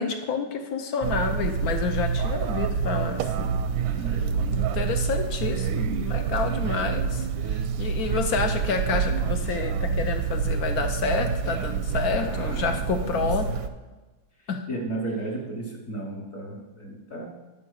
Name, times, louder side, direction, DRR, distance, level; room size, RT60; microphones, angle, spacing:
voice 1, 0.0-3.6 4.0-4.1 4.5-13.5 14.5-14.6, left 5 dB, 60° left, 6 dB, 1.0 m, -29 dB
sound 1, 1.0-13.7, right 6 dB, 85° right, 1.4 m, -27 dB
voice 2, 3.9-4.5 12.2-13.5 14.7-17.3, right 2 dB, 45° left, -2 dB, 1.5 m, -34 dB
11.5 x 4.8 x 6.4 m, 1.2 s
omnidirectional pair, 2.1 m